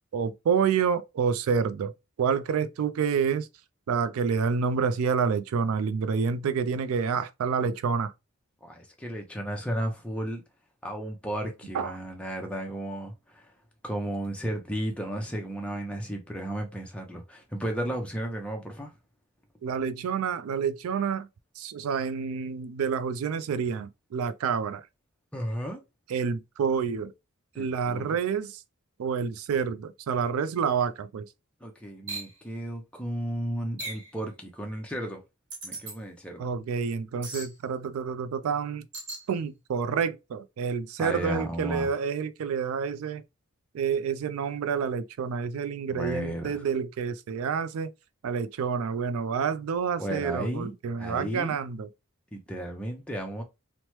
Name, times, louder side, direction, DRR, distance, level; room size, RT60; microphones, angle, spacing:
voice 1, 0.1-1.9 2.2-3.5 3.9-8.1 11.7-12.0 19.6-21.3 21.6-24.8 26.1-27.1 27.6-28.6 29.0-31.3 36.4-38.9 39.3-43.2 43.7-47.9 48.2-51.9, right 6 dB, 75° right, 0.3 m, -28 dB
voice 2, 8.6-10.4 10.8-13.5 13.8-18.9 25.3-25.8 27.5-28.2 31.6-35.2 35.6-36.5 41.0-41.9 45.9-46.6 50.0-51.6 52.3-53.4, right 1 dB, 5° left, 0.5 m, -34 dB
sound 1, 32.1-32.3 33.8-34.1 35.5-36.0 37.2-37.5 38.9-39.2, right 2 dB, 55° right, 1.0 m, -37 dB
3.0 x 2.1 x 2.9 m
head